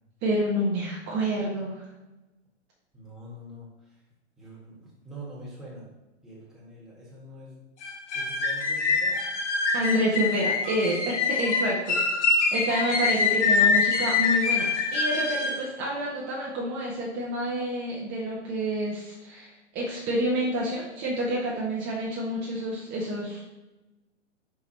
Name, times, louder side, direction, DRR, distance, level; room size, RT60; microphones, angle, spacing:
voice 1, 0.2-1.9 9.7-23.4, right 1 dB, 30° right, -4 dB, 1.4 m, -28 dB
voice 2, 2.9-3.7 4.4-5.9 6.2-7.6 8.1-9.2, right 1 dB, ahead, -7 dB, 1.9 m, -44 dB
sound 1, 7.8-15.6, left 4 dB, 70° left, 1.3 m, -25 dB
5.3 x 4.7 x 4.3 m, 1.0 s
hypercardioid pair, 135°, 36 cm